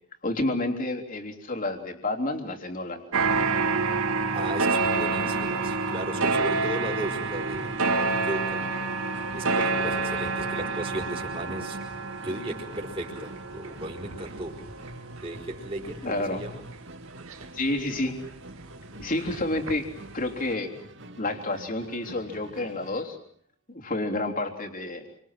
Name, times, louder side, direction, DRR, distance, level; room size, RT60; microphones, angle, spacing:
voice 1, 0.2-3.0 16.0-16.5 17.5-18.2 19.0-19.9 20.1-20.7 21.2-23.2 23.7-25.1, left 2 dB, 40° left, 3 dB, 3.6 m, -29 dB
sound 1, 3.1-18.2 18.6-20.0 20.3-20.4, right 4 dB, 85° right, 2.5 m, -28 dB
voice 2, 4.3-8.7 9.3-11.8 12.2-14.6 15.2-16.6, right 1 dB, 25° right, -1 dB, 4.9 m, -35 dB
Musical instrument, 6.5-23.2, right 1 dB, 60° right, 2.6 m, -46 dB
28.5 x 26.0 x 7.6 m, 0.62 s
head